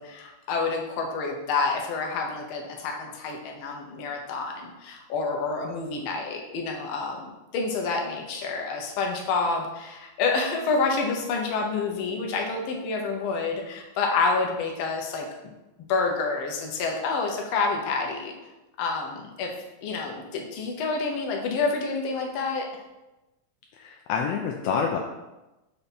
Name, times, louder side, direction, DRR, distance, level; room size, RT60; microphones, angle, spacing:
voice 1, 0.0-15.2 15.9-18.3 18.8-19.5 19.8-22.7, left 4 dB, 70° left, 1 dB, 1.3 m, -28 dB
voice 2, 23.8-25.0, left 6 dB, 85° left, 1 dB, 1.4 m, -27 dB
6.8 x 3.4 x 4.1 m, 1.0 s
omnidirectional pair, 3.4 m